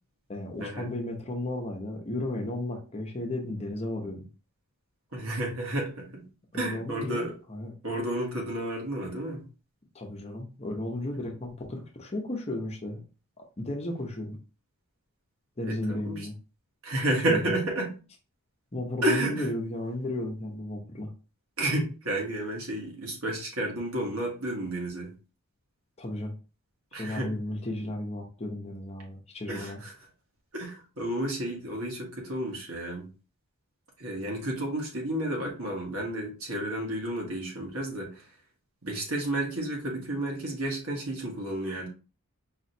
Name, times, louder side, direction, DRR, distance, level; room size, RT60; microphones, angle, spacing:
voice 1, 0.3-4.3 6.5-7.7 9.9-13.0 13.4-14.4 15.6-16.3 17.3-17.6 18.7-21.1 26.0-26.3 26.9-29.8, left 1 dB, 30° left, 1 dB, 0.8 m, -34 dB
voice 2, 5.1-6.3 6.5-7.3 7.8-9.4 15.6-16.3 16.8-17.9 19.0-19.5 21.6-25.1 26.9-27.3 29.5-29.9 30.5-33.1 34.0-38.2 38.8-41.9, right 1 dB, 70° right, 0 dB, 1.6 m, -31 dB
4.9 x 3.1 x 2.7 m, 0.34 s
head